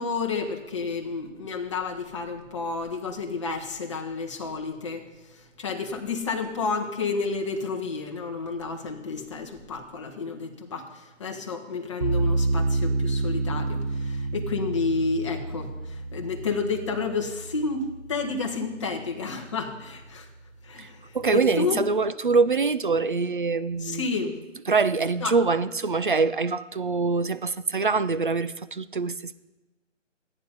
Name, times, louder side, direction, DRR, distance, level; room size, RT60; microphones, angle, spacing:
voice 1, 0.0-5.0 5.3-20.3 20.6-21.8 23.8-24.3 25.2-25.3, left 4 dB, 25° left, 3 dB, 1.1 m, -31 dB
sound 1, 12.0-19.1, right 3 dB, 65° right, 1.2 m, -29 dB
voice 2, 21.1-24.3 24.7-29.4, right 4 dB, 45° right, 14 dB, 0.4 m, -24 dB
13.5 x 9.7 x 5.4 m, 1.1 s
figure-of-eight pair, 155°, 38 cm